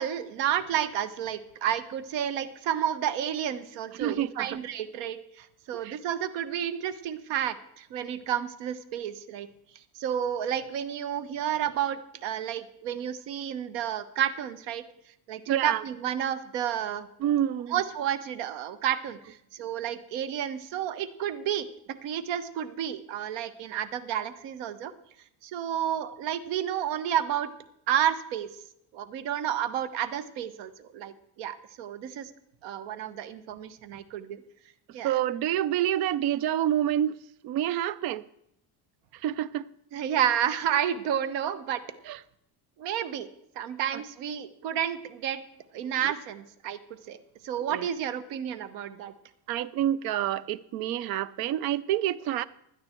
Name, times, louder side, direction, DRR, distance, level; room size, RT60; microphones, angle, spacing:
voice 1, 0.0-9.5 9.9-14.8 15.3-17.1 17.7-21.7 22.0-24.9 25.4-27.5 27.9-28.5 28.9-32.3 32.6-34.4 34.9-35.2 39.9-41.8 42.8-43.3 43.5-45.4 45.7-46.8 47.1-47.2 47.4-49.1, right 10 dB, 75° right, 1.3 m, -31 dB
voice 2, 4.0-4.5 5.8-6.0 15.5-15.8 17.2-17.7 35.0-37.1 37.4-38.2 39.2-39.6 42.1-42.2 47.7-47.8 49.5-52.4, right 11 dB, 55° right, 0.7 m, -27 dB
16.5 x 11.5 x 4.5 m
cardioid pair, 175°, 43 cm